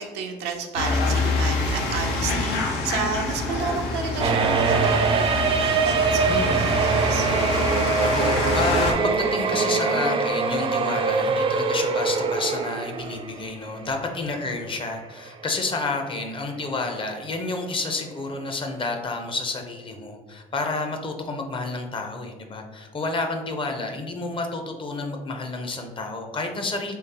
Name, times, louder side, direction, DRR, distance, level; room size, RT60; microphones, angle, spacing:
voice 1, 0.0-7.3 23.2-23.4, right 5 dB, 90° right, 3 dB, 0.6 m, -32 dB
sound 1, 0.7-8.9, left 3 dB, 90° left, 0.6 m, -26 dB
sound 2, 4.2-13.5 13.8-13.9 14.8-14.9 15.3-15.4, right 5 dB, 35° right, 0.4 m, -23 dB
voice 2, 6.3-6.8 8.0-27.0, left 3 dB, 30° left, 4 dB, 0.6 m, -30 dB
3.7 x 3.2 x 2.8 m, 1.3 s
cardioid pair, 110°, 17 cm